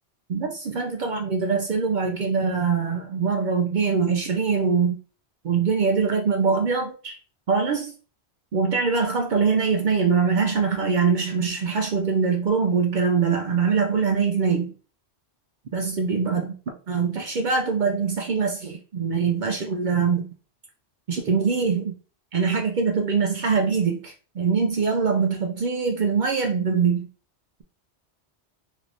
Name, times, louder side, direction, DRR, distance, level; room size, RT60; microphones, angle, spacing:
voice 1, 0.3-5.0 5.4-7.2 7.5-7.9 8.5-14.7 15.7-16.5 16.9-20.3 21.1-22.0 22.3-27.1, right 5 dB, 60° right, 0.5 m, -23 dB
3.1 x 3.1 x 2.5 m
omnidirectional pair, 1.2 m